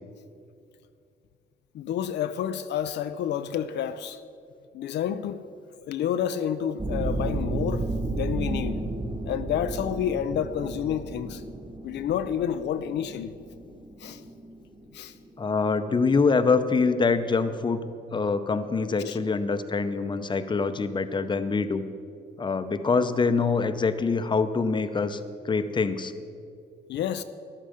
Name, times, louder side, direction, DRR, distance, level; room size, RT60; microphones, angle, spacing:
voice 1, 1.7-4.2 4.7-5.4 5.9-8.8 9.2-11.4 11.8-13.3 14.0-14.2 14.9-15.1 19.0-19.2 26.9-27.2, left 9 dB, 75° left, 0.5 m, -29 dB
sound 1, 6.8-17.3, right 2 dB, 35° right, 2.5 m, -33 dB
voice 2, 15.4-21.8 22.4-25.2 25.4-26.1, left 4 dB, 25° left, 0.7 m, -25 dB
13.0 x 11.5 x 5.0 m
cardioid pair, 100°, 18 cm